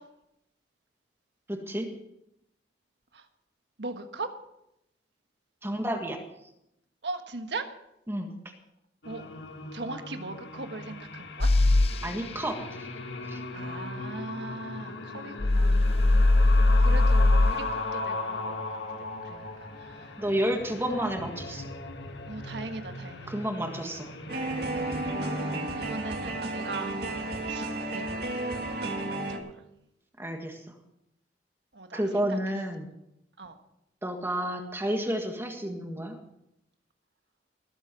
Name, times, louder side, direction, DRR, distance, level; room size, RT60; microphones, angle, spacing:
voice 1, 1.5-1.9 5.6-6.2 8.1-8.3 12.0-12.9 13.3-13.4 20.2-21.7 23.3-24.1 25.5-25.7 30.2-30.7 31.9-32.9 34.0-36.2, right 1 dB, 15° right, 4 dB, 1.7 m, -31 dB
voice 2, 3.8-4.3 7.0-7.7 9.0-9.2 9.7-11.5 13.5-18.6 19.2-19.5 19.8-20.4 22.3-23.3 24.7-25.1 25.8-29.4 31.7-32.4 33.4-33.5, right 3 dB, 80° right, 7 dB, 1.5 m, -40 dB
sound 1, 9.0-25.6, left 2 dB, 80° left, 1.6 m, -38 dB
sound 2, 11.4-11.9 15.4-17.5, left 2 dB, 35° left, 0.5 m, -20 dB
sound 3, 24.3-29.4, right 2 dB, 65° right, 2.3 m, -32 dB
19.0 x 8.2 x 6.1 m, 0.83 s
head